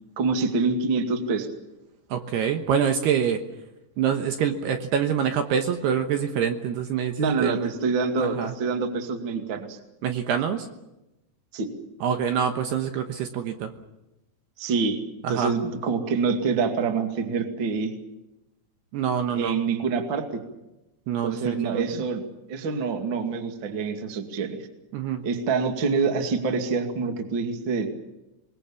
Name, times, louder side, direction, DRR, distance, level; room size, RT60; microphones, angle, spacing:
voice 1, 0.2-1.5 7.2-9.8 11.5-11.7 14.6-15.0 15.3-17.9 19.3-20.4 21.2-22.2 22.5-24.6 25.2-27.9, right 4 dB, 40° right, 5 dB, 1.9 m, -26 dB
voice 2, 2.1-3.4 4.0-7.7 8.2-8.5 10.0-10.7 12.0-13.7 15.2-15.5 18.9-19.6 21.1-22.0 24.9-25.2, right 8 dB, 70° right, 6 dB, 2.9 m, -26 dB
27.5 x 21.0 x 7.1 m, 0.96 s
omnidirectional pair, 5.6 m